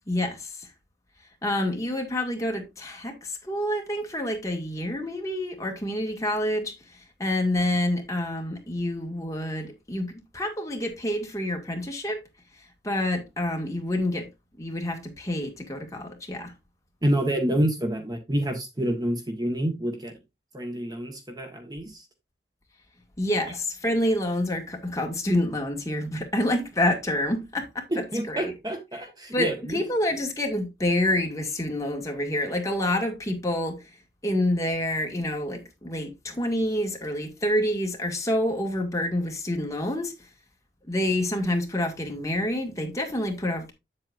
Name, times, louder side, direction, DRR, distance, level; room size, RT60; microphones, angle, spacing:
voice 1, 0.1-0.7 1.4-6.7 7.2-12.2 12.8-14.3 14.6-16.5 23.2-28.5 29.3-33.8 34.2-40.1 40.9-43.7, left 1 dB, 20° left, 1.9 m, -27 dB
voice 2, 17.0-20.1 20.5-22.0 27.9-29.8, right 1 dB, 20° right, 1.3 m, -28 dB
8.6 x 7.7 x 2.5 m
head